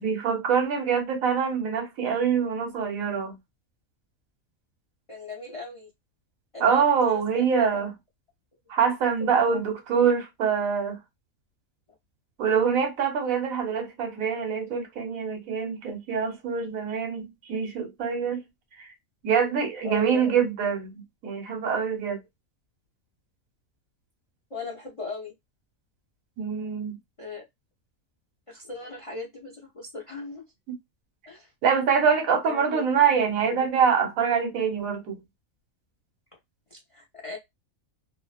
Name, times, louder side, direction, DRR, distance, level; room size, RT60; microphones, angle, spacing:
voice 1, 0.0-3.4 6.6-7.9 8.7-11.0 12.4-18.4 18.8-18.9 19.2-22.2 26.4-27.0 31.6-35.2, right 6 dB, 90° right, 1.3 m, -25 dB
voice 2, 5.1-5.9 6.5-7.8 8.8-8.9 9.2-9.6 19.8-20.3 24.5-25.3 27.2-27.4 28.5-30.4 31.3-31.5 32.4-32.8 33.5-33.7 36.7-37.4, left 3 dB, 40° left, 0.4 m, -38 dB
2.7 x 2.1 x 2.4 m
omnidirectional pair, 1.4 m